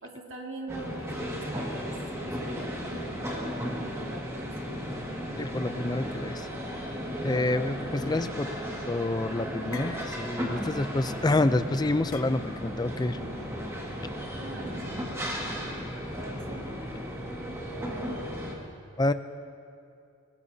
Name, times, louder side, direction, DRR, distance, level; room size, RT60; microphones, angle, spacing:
voice 1, 0.0-1.9 2.2-4.7 14.3-17.1 17.7-18.2, right 2 dB, 60° right, -1 dB, 2.3 m, -44 dB
sound 1, 0.7-18.5, equal, 15° right, 1.9 m, -35 dB
voice 2, 5.4-6.5 7.2-8.5 8.9-13.2 19.0-19.1, left 2 dB, 20° left, 12 dB, 0.4 m, -28 dB
sound 2, 9.1-11.1 12.1-12.8, left 6 dB, 75° left, 0.8 m, -45 dB
24.0 x 20.0 x 2.8 m, 2.5 s
head